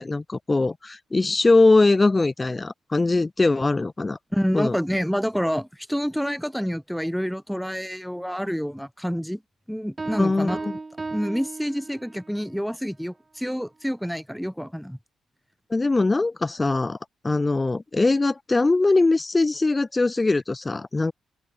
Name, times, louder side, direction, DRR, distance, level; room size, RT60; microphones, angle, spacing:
voice 1, 0.0-4.2 4.5-4.8 10.2-10.7 15.7-17.0 17.2-21.1, left 3 dB, 15° left, 0.8 m, -21 dB
voice 2, 4.3-9.4 9.7-10.6 11.1-15.0, equal, ahead, 6.8 m, -28 dB
Piano, 10.0-12.3, right 3 dB, 20° right, 2.9 m, -35 dB
open air
wide cardioid pair, 155°, 0 cm